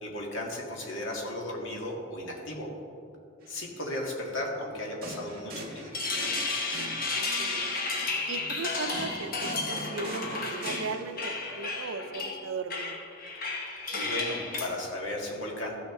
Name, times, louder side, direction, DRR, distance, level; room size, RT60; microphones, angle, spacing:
voice 1, 0.0-2.7 3.5-5.9 14.0-15.7, left 1 dB, 75° left, -1 dB, 1.9 m, -35 dB
sound 1, 3.4-3.6 5.0-7.5 8.9-11.5, right 1 dB, 45° right, 1.7 m, -42 dB
sound 2, 5.7-14.7, left 3 dB, 45° left, 1.1 m, -32 dB
voice 2, 7.2-7.7 8.3-13.0, right 4 dB, 90° right, 10 dB, 0.5 m, -38 dB
14.0 x 6.4 x 3.7 m, 2.6 s
head